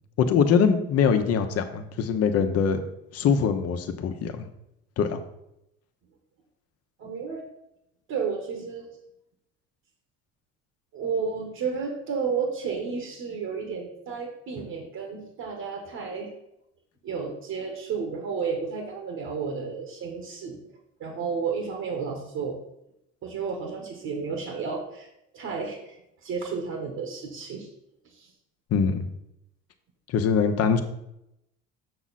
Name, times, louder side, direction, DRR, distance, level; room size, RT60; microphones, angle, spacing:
voice 1, 0.2-2.8 3.1-4.4 5.0-5.2 28.7-29.1 30.1-30.8, left 6 dB, 55° left, 8 dB, 1.0 m, -23 dB
voice 2, 7.0-7.4 8.1-9.0 10.9-16.3 17.0-20.6 21.0-22.6 23.2-27.7 28.0-28.3, right 5 dB, 60° right, 2 dB, 1.5 m, -32 dB
6.9 x 6.1 x 4.2 m, 0.82 s
supercardioid pair, 95°, 30 cm